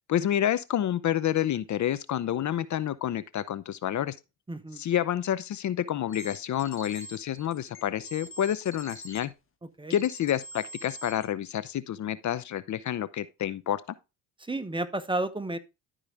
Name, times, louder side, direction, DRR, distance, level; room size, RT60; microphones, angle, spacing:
voice 1, 0.1-4.2 4.8-9.3 9.9-13.8, left 11 dB, 50° left, 0.7 m, -29 dB
voice 2, 4.5-4.8 9.8-10.0 14.5-15.6, right 2 dB, 15° right, 1.0 m, -31 dB
sound 1, 6.1-9.3 9.9-11.3, equal, 35° left, 1.7 m, -44 dB
12.0 x 4.9 x 3.4 m
supercardioid pair, 80°, 37 cm